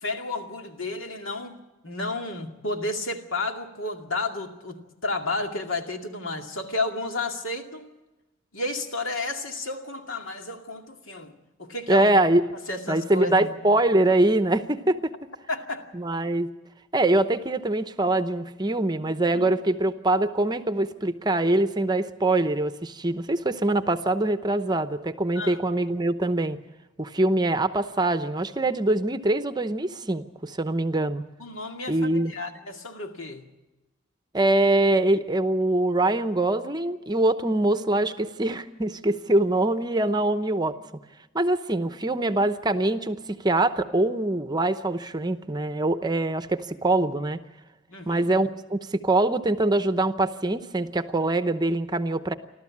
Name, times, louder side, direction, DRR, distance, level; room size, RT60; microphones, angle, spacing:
voice 1, 0.0-7.9 8.5-11.3 11.6-12.1 12.7-13.5 15.5-15.9 19.3-19.5 25.4-25.6 31.4-33.4 41.8-41.9 47.9-48.3, left 2 dB, 75° left, 4 dB, 2.4 m, -32 dB
voice 2, 11.9-12.4 12.9-15.1 15.9-16.5 16.9-26.6 27.0-31.2 31.9-32.3 34.3-40.8 41.3-47.4 48.1-52.3, right 2 dB, 20° right, 10 dB, 0.8 m, -23 dB
29.5 x 12.5 x 8.5 m, 1.1 s
head